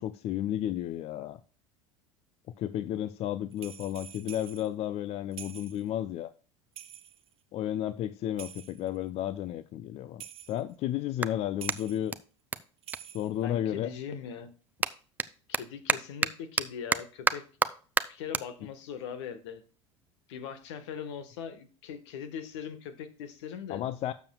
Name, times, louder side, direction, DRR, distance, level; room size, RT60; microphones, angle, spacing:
voice 1, 0.0-1.4 2.6-6.3 7.5-12.2 13.1-14.0 23.7-24.1, left 11 dB, 40° left, 0.5 m, -33 dB
sound 1, 3.5-4.7 5.3-5.8 6.8-7.3 8.4-9.0 10.2-10.6 11.6-12.1 12.8-13.4, right 11 dB, 35° right, 0.9 m, -46 dB
Clapping, 9.8-13.9 14.2-20.8, right 3 dB, 10° right, 0.5 m, -34 dB
voice 2, 13.4-14.5 15.5-17.4 18.1-19.6 20.3-23.8, left 7 dB, 65° left, 1.4 m, -40 dB
12.0 x 7.1 x 2.3 m
figure-of-eight pair, 75°, 16 cm